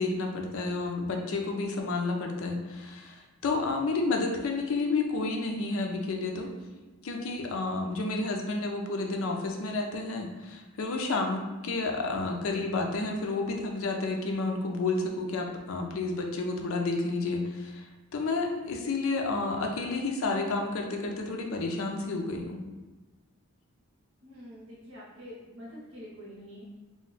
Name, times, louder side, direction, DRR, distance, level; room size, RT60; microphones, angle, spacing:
voice 1, 0.0-6.5 7.0-17.9 18.1-22.6, left 3 dB, 70° left, 2 dB, 0.4 m, -30 dB
voice 2, 24.2-26.6, equal, 85° right, -7 dB, 0.7 m, -46 dB
2.2 x 2.1 x 3.8 m, 1.2 s
head